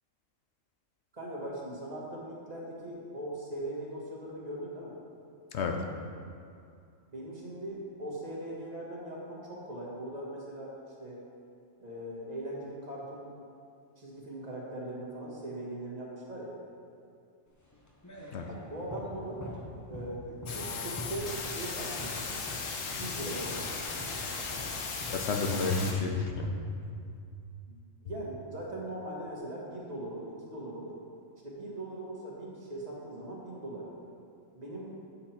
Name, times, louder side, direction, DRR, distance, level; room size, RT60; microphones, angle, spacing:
voice 1, 1.1-4.9 7.1-10.7 11.0-11.2 11.8-13.3 14.0-16.5 18.4-19.4 19.9-22.2 22.9-23.9 27.7-27.8 28.0-30.9 31.4-34.0 34.5-35.0, right 1 dB, 35° right, -4 dB, 1.6 m, -40 dB
sound 1, 17.6-25.7, left 1 dB, 20° left, 0.6 m, -45 dB
sound 2, 20.5-25.9, left 4 dB, 85° left, 1.2 m, -37 dB
voice 2, 25.1-26.8 27.1-27.2, left 4 dB, 65° left, 3 dB, 0.9 m, -31 dB
8.4 x 5.7 x 4.3 m, 2.4 s
omnidirectional pair, 1.3 m